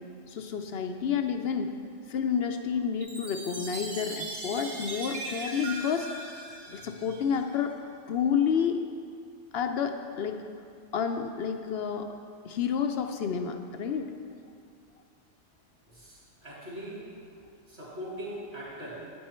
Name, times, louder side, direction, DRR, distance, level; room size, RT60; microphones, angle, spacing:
voice 1, 0.3-1.7 2.1-6.1 6.7-7.7 8.1-8.8 9.5-10.4 10.9-12.1 12.4-14.1, left 7 dB, 65° left, 6 dB, 0.7 m, -29 dB
Chime, 3.0-7.5, right 2 dB, 70° right, 1.6 m, -39 dB
voice 2, 15.9-17.0 17.7-19.0, equal, 40° right, -8 dB, 2.3 m, -41 dB
8.7 x 8.0 x 4.3 m, 2.4 s
omnidirectional pair, 1.4 m